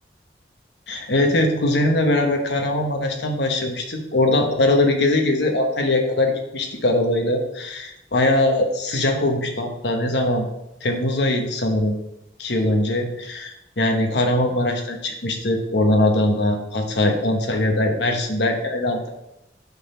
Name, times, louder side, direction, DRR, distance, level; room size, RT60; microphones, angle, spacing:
voice 1, 0.9-10.4 10.8-11.9 12.4-19.1, left 1 dB, 80° left, 3 dB, 1.1 m, -21 dB
7.1 x 3.9 x 5.4 m, 0.87 s
head